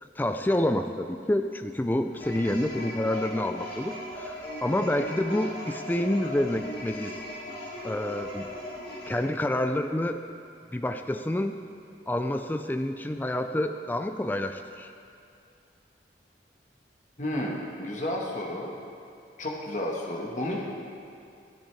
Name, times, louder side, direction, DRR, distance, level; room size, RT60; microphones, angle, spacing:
voice 1, 0.2-7.2 7.8-8.5 9.1-10.2 10.7-11.6 12.1-14.9, left 1 dB, 10° left, 7 dB, 0.3 m, -28 dB
sound 1, 2.1-9.2, left 1 dB, 65° left, 2.0 m, -38 dB
voice 2, 17.2-18.7 19.4-20.6, left 1 dB, 40° left, -2 dB, 1.3 m, -31 dB
12.5 x 10.0 x 3.3 m, 2.5 s
head